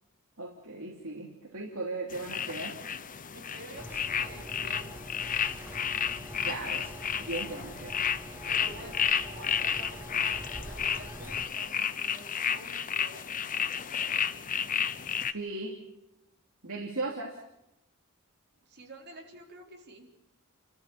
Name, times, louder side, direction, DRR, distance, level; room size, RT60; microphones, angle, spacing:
voice 1, 0.4-2.8 6.4-6.9 7.2-8.0 15.2-15.8 16.6-17.4, right 2 dB, 65° right, -1 dB, 3.1 m, -37 dB
sound 1, 2.1-15.3, left 8 dB, 40° left, 0.8 m, -32 dB
voice 2, 3.3-5.0 8.4-13.4 18.7-20.1, right 2 dB, 50° right, 1 dB, 4.2 m, -49 dB
sound 2, 3.8-11.5, right 1 dB, 10° right, 1.7 m, -45 dB
29.5 x 14.0 x 8.6 m, 0.89 s
head